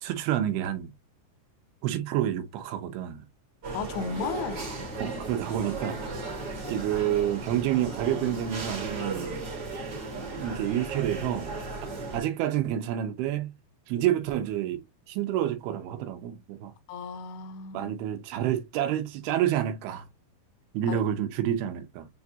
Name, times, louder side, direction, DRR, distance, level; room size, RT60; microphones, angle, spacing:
voice 1, 0.0-0.9 1.8-3.2 5.0-6.4 6.7-9.4 10.1-11.6 12.1-13.5 13.9-14.8 15.1-16.7 17.7-20.1 20.7-22.1, right 11 dB, 85° right, 2.7 m, -29 dB
sound 1, 3.6-12.2, right 2 dB, 60° right, 1.0 m, -36 dB
voice 2, 3.7-4.7 16.9-17.9 20.9-21.0, left 5 dB, 85° left, 2.5 m, -34 dB
6.8 x 2.4 x 2.7 m
omnidirectional pair, 4.4 m